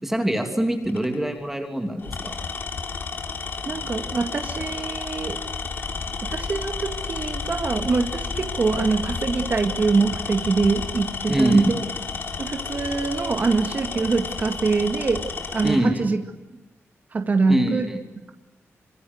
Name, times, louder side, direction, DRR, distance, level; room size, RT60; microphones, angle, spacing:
voice 1, 0.0-2.3 11.3-11.6 15.6-16.0 17.5-18.0, right 1 dB, 5° right, 4 dB, 2.9 m, -24 dB
Tools, 0.8-1.1 2.0-15.8, left 4 dB, 45° left, 3.2 m, -31 dB
voice 2, 3.7-5.4 6.3-11.8 12.4-15.2 15.5-16.2 17.1-17.8, right 4 dB, 35° right, 6 dB, 2.1 m, -24 dB
27.0 x 25.5 x 8.0 m, 1.0 s
wide cardioid pair, 160°, 5 cm